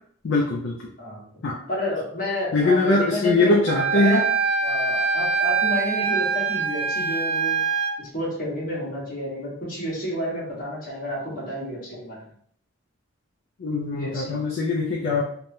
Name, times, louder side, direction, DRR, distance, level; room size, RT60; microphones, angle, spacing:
voice 1, 0.2-0.8 1.4-1.6 2.5-4.2 13.6-15.2, left 3 dB, 65° left, -1 dB, 0.4 m, -21 dB
voice 2, 1.0-1.4 1.7-4.2 4.6-7.6 8.0-12.3 13.9-14.4 15.1-15.2, equal, 45° left, -6 dB, 1.2 m, -30 dB
Wind instrument woodwind instrument, 3.7-7.9, right 5 dB, 35° right, 0.4 m, -24 dB
3.2 x 2.2 x 2.6 m, 0.62 s
head